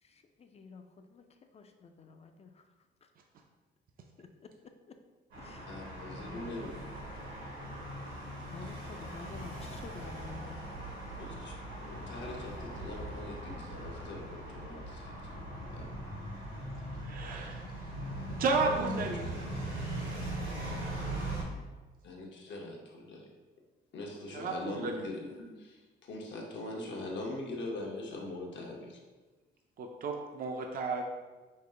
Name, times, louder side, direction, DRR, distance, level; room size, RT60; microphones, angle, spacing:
voice 1, 0.0-2.7 3.0-3.1 4.2-5.0 5.4-5.7 6.2-6.7 8.5-10.6, left 4 dB, 30° left, 6 dB, 0.4 m, -50 dB
sound 1, 5.3-21.4, right 1 dB, 85° right, 1.3 m, -40 dB
voice 2, 5.7-6.7 11.2-15.9 17.3-17.5 18.6-18.9 19.2-19.4 22.0-23.3 23.9-29.0, left 2 dB, 65° left, -1 dB, 0.9 m, -42 dB
voice 3, 17.0-17.6 18.4-19.2 24.3-25.0 29.8-31.0, right 4 dB, 45° right, 2 dB, 0.5 m, -32 dB
5.2 x 2.0 x 3.7 m, 1.3 s
cardioid pair, 90°, 20 cm